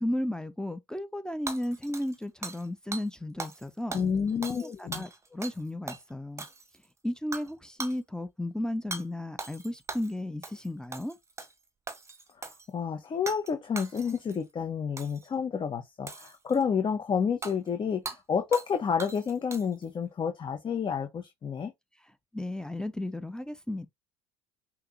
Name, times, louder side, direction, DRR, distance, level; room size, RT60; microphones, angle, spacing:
voice 1, 0.0-4.0 4.5-6.5 7.0-11.2 22.3-23.9, left 1 dB, 5° left, 0.7 m, -34 dB
Hammer / Shatter, 1.5-2.7 2.9-3.1 3.4-3.6 3.9-5.6 5.9-6.0 6.4-6.8 7.3-7.5 7.8-8.0 8.9-9.0 9.4-10.1 10.4-10.7 10.9-11.5 11.9-12.7 13.3-13.5 13.8-14.4 15.0-15.3 16.1-16.6 17.4-17.5 18.1-18.2 18.5-18.7 19.0-19.8, right 3 dB, 20° right, 1.1 m, -40 dB
voice 2, 3.9-5.1 12.4-21.7, left 6 dB, 30° left, 0.9 m, -30 dB
5.7 x 2.9 x 2.7 m
hypercardioid pair, 70°, 16 cm